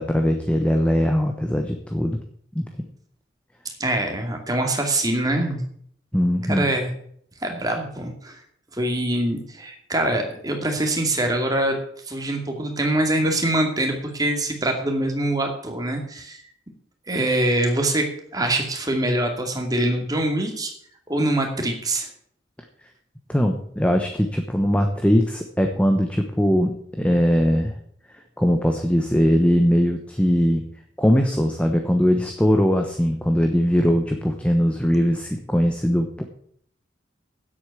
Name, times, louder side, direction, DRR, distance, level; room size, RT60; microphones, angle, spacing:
voice 1, 0.0-2.2 2.5-2.9 6.1-6.7 23.3-27.7 28.4-30.6 31.0-36.2, equal, 5° left, 4 dB, 1.0 m, -20 dB
voice 2, 3.8-5.6 6.5-6.9 7.4-8.4 8.7-11.8 12.1-16.4 17.1-20.7 21.1-22.1, right 1 dB, 20° right, 3 dB, 2.4 m, -24 dB
9.9 x 8.4 x 8.3 m, 0.63 s
head